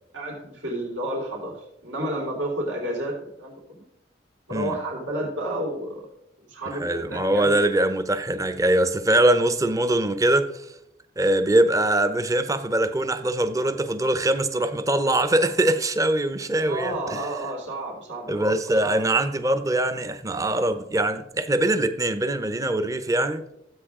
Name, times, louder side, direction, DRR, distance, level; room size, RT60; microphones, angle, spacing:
voice 1, 0.1-1.6 1.8-3.9 4.5-6.1 6.4-7.6 16.7-18.5 18.8-19.0, right 1 dB, 90° right, 3.5 m, -31 dB
voice 2, 6.8-10.6 11.2-17.3 18.3-23.5, right 1 dB, 20° right, 0.6 m, -22 dB
13.5 x 7.9 x 3.6 m
head